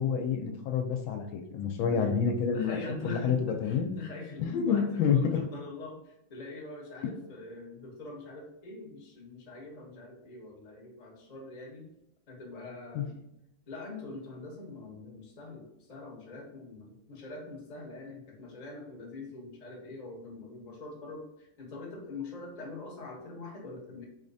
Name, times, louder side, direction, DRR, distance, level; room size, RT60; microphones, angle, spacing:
voice 1, 0.0-2.8 3.0-3.9 4.4-5.4 12.9-13.0, left 6 dB, 85° left, 5 dB, 1.4 m, -28 dB
voice 2, 2.5-11.9 12.3-13.1 13.7-24.0, left 3 dB, 30° left, -1 dB, 0.7 m, -43 dB
4.1 x 3.6 x 2.6 m, 0.83 s
omnidirectional pair, 2.1 m